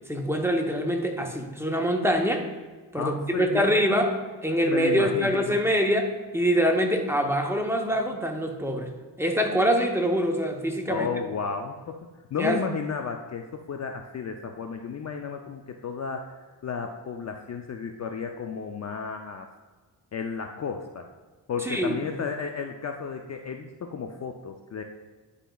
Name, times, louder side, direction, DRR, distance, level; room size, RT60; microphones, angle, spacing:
voice 1, 0.1-2.5 2.9-8.9 9.2-11.1 12.4-12.6 21.6-22.0, equal, 5° right, 2 dB, 0.8 m, -24 dB
voice 2, 2.9-3.7 4.6-5.6 10.9-16.3 16.6-19.5 20.1-21.1 21.5-24.8, left 5 dB, 40° left, 4 dB, 0.4 m, -33 dB
10.0 x 5.0 x 2.3 m, 1.4 s
cardioid pair, 85°, 45 cm